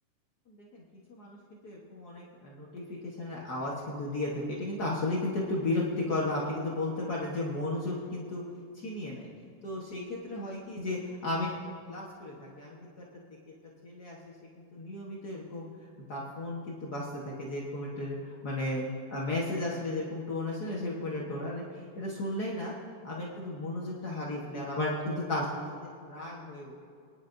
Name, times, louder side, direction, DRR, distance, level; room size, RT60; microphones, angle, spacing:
voice 1, 0.5-0.8 1.1-1.4 1.6-8.4 8.7-9.3 9.6-13.1 13.8-14.2 14.6-15.7 16.1-18.8 19.1-21.6 21.9-22.7 23.0-25.5 26.0-26.7, left 2 dB, 75° left, -4 dB, 0.9 m, -34 dB
26.0 x 10.0 x 2.6 m, 2.3 s
omnidirectional pair, 3.8 m